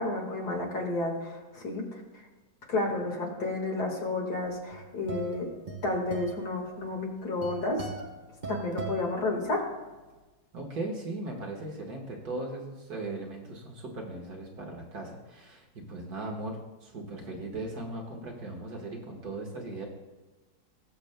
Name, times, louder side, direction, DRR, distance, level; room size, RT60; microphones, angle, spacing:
voice 1, 0.0-2.2 2.7-5.5 5.8-7.9 8.5-9.6, left 2 dB, 60° left, 0 dB, 2.4 m, -31 dB
sound 1, 4.5-9.9, right 4 dB, 30° right, 1.0 m, -41 dB
voice 2, 10.5-19.9, right 2 dB, 60° right, 0 dB, 1.9 m, -38 dB
20.0 x 7.1 x 2.2 m, 1.2 s
omnidirectional pair, 1.9 m